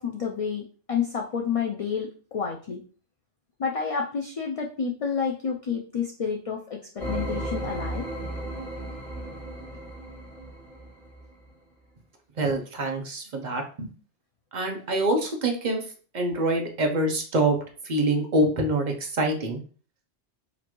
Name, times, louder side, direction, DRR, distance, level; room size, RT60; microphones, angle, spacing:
voice 1, 0.0-2.8 3.6-8.1, left 6 dB, 60° left, 1 dB, 0.3 m, -29 dB
sound 1, 7.0-11.3, right 1 dB, ahead, 1.4 m, -34 dB
voice 2, 12.4-13.9 14.5-15.8 16.1-17.6 17.8-19.6, right 2 dB, 45° right, 2 dB, 0.8 m, -25 dB
4.0 x 2.6 x 3.0 m, 0.39 s
omnidirectional pair, 1.2 m